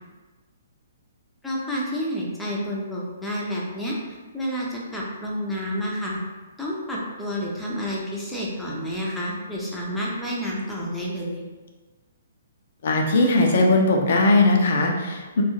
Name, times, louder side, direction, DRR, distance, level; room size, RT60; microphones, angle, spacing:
voice 1, 1.4-6.2 6.6-11.4, equal, 5° left, -5 dB, 0.6 m, -29 dB
voice 2, 12.8-15.4, left 2 dB, 55° left, 2 dB, 0.5 m, -19 dB
2.4 x 2.3 x 3.0 m, 1.3 s
hypercardioid pair, 130°, 0 cm